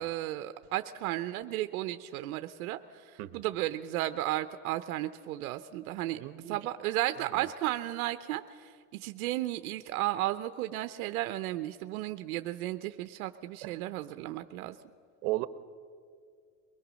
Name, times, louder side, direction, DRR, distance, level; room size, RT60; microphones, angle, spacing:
voice 1, 0.0-6.2 6.5-14.8, right 15 dB, 90° right, 10 dB, 0.8 m, -34 dB
voice 2, 6.2-6.6 7.3-7.5 13.6-13.7 15.2-15.5, right 18 dB, 70° right, 13 dB, 1.1 m, -35 dB
23.0 x 20.0 x 6.3 m, 2.2 s
supercardioid pair, 125°, 42 cm